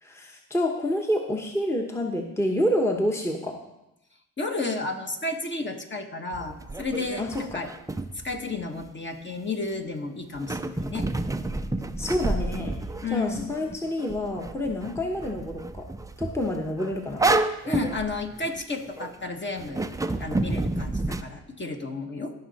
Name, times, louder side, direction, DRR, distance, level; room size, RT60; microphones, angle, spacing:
voice 1, 0.0-3.6 7.2-7.6 12.0-12.8 13.1-15.9 16.2-17.3, left 1 dB, 5° left, 2 dB, 1.1 m, -28 dB
voice 2, 4.4-7.7 8.2-11.1 13.0-13.5 17.7-22.3, left 3 dB, 30° left, 3 dB, 1.4 m, -32 dB
sound 1, 6.3-8.9 10.4-19.2 19.6-21.2, right 2 dB, 10° right, 0.5 m, -30 dB
17.0 x 5.6 x 4.2 m, 0.90 s
cardioid pair, 80°, 37 cm